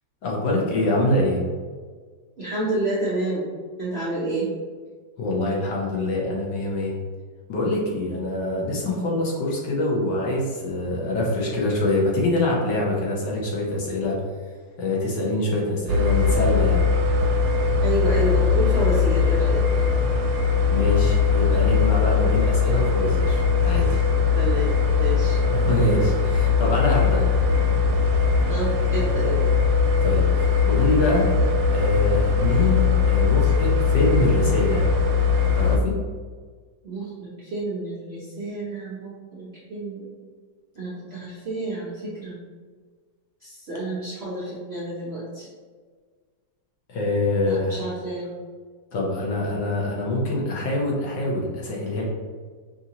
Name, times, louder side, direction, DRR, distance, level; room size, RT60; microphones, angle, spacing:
voice 1, 0.2-1.4 5.2-6.9 7.5-14.2 14.8-16.8 20.7-24.0 25.5-27.3 30.0-31.3 31.7-34.8 35.5-36.0 46.9-47.8 48.9-52.0, left 1 dB, 70° left, -3 dB, 1.5 m, -24 dB
voice 2, 2.4-3.5 3.8-4.5 17.8-19.6 24.3-25.4 27.1-27.4 28.5-29.4 36.8-40.1 40.8-42.4 43.4-45.5 47.4-48.3, right 2 dB, 55° right, -8 dB, 0.7 m, -29 dB
Noisy refrigerator with sound machine playing crickets, 15.9-35.8, left 5 dB, 75° right, 1.2 m, -20 dB
5.4 x 2.7 x 2.8 m, 1.6 s
omnidirectional pair, 2.1 m